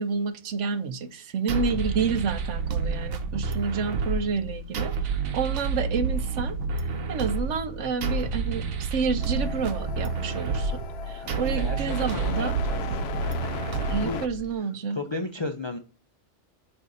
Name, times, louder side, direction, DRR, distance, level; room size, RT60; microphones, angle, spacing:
voice 1, 0.0-6.8 7.1-12.6 13.9-15.0, right 5 dB, 70° right, 1.0 m, -29 dB
sound 1, 1.5-14.5, right 4 dB, 90° right, 1.3 m, -29 dB
sound 2, 9.2-14.3, left 6 dB, 60° left, 0.8 m, -37 dB
voice 2, 11.2-11.8 12.1-12.8 13.9-14.4 14.9-15.8, left 2 dB, 35° left, 0.4 m, -34 dB
7.4 x 2.7 x 5.2 m
omnidirectional pair, 1.3 m